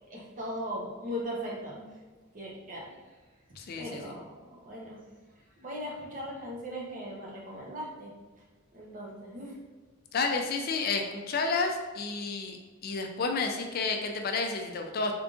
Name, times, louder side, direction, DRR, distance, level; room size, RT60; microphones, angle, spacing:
voice 1, 0.1-1.9 2.3-2.9 3.8-5.0 5.6-8.1 8.7-9.6, equal, 40° right, -3 dB, 0.8 m, -38 dB
voice 2, 3.6-4.1 10.1-12.6 12.8-15.1, left 4 dB, 45° left, 4 dB, 0.4 m, -31 dB
3.7 x 3.6 x 2.4 m, 1.3 s
head